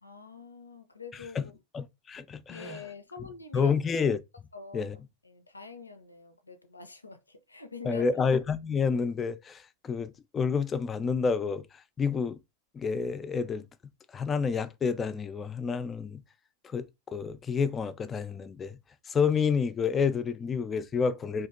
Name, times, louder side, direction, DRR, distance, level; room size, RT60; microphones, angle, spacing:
voice 1, 0.0-1.6 2.5-3.7 4.5-4.9 5.2-8.1, left 3 dB, 80° left, 0.5 m, -45 dB
voice 2, 1.1-2.8 3.2-3.3 3.5-4.2 4.7-5.0 7.8-11.7 12.0-12.4 12.7-16.2 16.6-18.8 19.1-21.5, left 5 dB, 20° left, 0.3 m, -29 dB
2.8 x 2.5 x 3.5 m
figure-of-eight pair, 90°, 0 cm